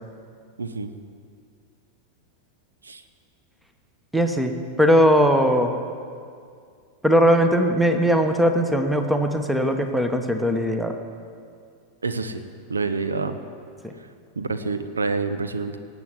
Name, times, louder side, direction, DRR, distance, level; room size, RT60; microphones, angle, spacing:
voice 1, 0.6-0.9 2.8-3.0 12.0-12.4 12.7-13.4 14.4-15.8, right 4 dB, 75° right, 10 dB, 0.9 m, -27 dB
voice 2, 4.1-5.7 7.0-10.9 13.8-13.9, equal, 5° right, 6 dB, 1.1 m, -19 dB
18.5 x 8.0 x 7.6 m, 2.3 s
figure-of-eight pair, 90°, 0 cm